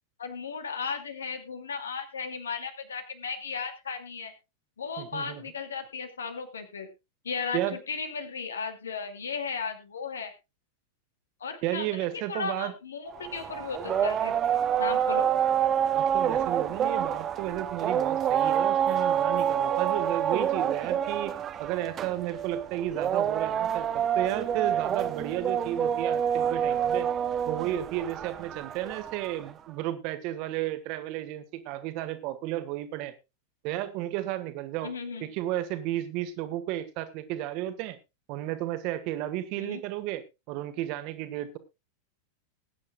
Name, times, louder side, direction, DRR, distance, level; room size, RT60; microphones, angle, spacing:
voice 1, 0.2-4.3 4.8-6.9 7.2-10.3 11.4-14.4 14.8-15.3 34.8-35.2 39.6-39.8, left 5 dB, 70° left, 8 dB, 2.4 m, -35 dB
voice 2, 5.0-5.4 7.5-7.8 11.6-12.7 15.9-27.1 27.5-33.1 33.6-34.9 35.2-38.0 38.3-41.6, right 13 dB, 45° right, 11 dB, 1.8 m, -33 dB
sound 1, 13.1-29.5, right 9 dB, 25° right, 1.0 m, -27 dB
20.5 x 9.6 x 2.3 m, 0.25 s
figure-of-eight pair, 90°, 0 cm